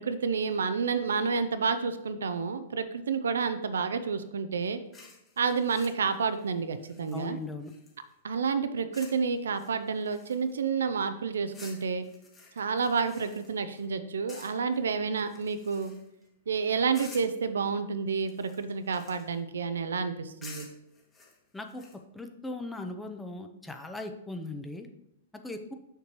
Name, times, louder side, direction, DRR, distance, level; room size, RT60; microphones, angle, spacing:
voice 1, 0.0-4.8 5.4-7.4 8.2-12.0 12.6-15.9 16.5-20.7, right 5 dB, 75° right, 11 dB, 0.5 m, -29 dB
sound 1, 4.9-8.1 8.9-9.2 9.5-10.7 11.5-13.9 14.3-14.8 15.1-16.2 16.9-17.5 18.2-19.4 20.4-22.0, left 4 dB, 25° left, 1.8 m, -51 dB
voice 2, 7.1-7.7 21.5-21.8 22.1-24.9 25.4-25.7, left 2 dB, 5° left, 5 dB, 0.7 m, -38 dB
6.7 x 6.5 x 3.0 m, 0.79 s
figure-of-eight pair, 105°, 0 cm